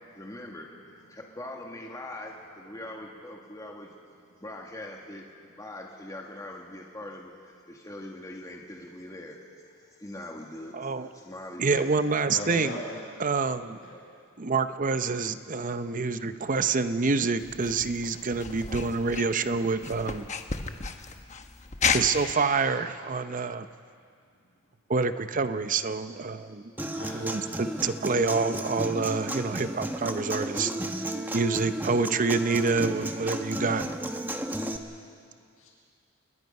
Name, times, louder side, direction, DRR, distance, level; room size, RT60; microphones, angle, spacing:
voice 1, 0.1-3.9 4.4-5.2 5.6-11.9, left 1 dB, 15° left, 0 dB, 1.8 m, -42 dB
voice 2, 10.7-11.1 11.6-12.8 13.2-13.8 14.4-20.3 21.9-23.7 24.9-26.7 27.1-30.7 31.3-33.9, right 4 dB, 40° right, 10 dB, 0.7 m, -27 dB
voice 3, 12.3-13.0 13.8-14.0 26.9-27.4 34.4-35.1 35.6-35.7, left 1 dB, 80° left, -3 dB, 7.7 m, -40 dB
sound 1, 17.4-22.3, left 5 dB, 35° left, 1.0 m, -32 dB
Human voice / Acoustic guitar, 26.8-34.8, right 1 dB, 10° right, 1.1 m, -33 dB
29.5 x 20.5 x 5.5 m, 2.2 s
head